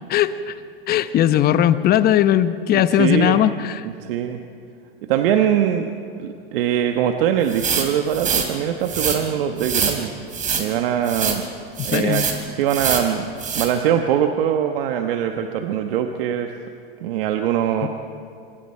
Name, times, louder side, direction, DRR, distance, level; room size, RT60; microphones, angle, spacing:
voice 1, 0.1-0.5 0.9-3.9 11.8-12.3 17.8-17.9, left 11 dB, 30° left, 12 dB, 0.9 m, -18 dB
voice 2, 2.7-3.4 3.8-4.4 5.1-5.9 6.2-10.1 10.5-11.4 11.8-13.3 13.5-16.5 17.0-17.9, right 9 dB, 65° right, 5 dB, 1.3 m, -22 dB
sound 1, 7.5-8.5 8.8-9.2 9.6-10.0 10.3-10.7 11.0-11.4 11.8-12.4 12.7-13.1 13.4-13.7, right 6 dB, 25° right, 3.5 m, -24 dB
25.5 x 23.5 x 4.6 m, 2.4 s
hypercardioid pair, 110°, 30 cm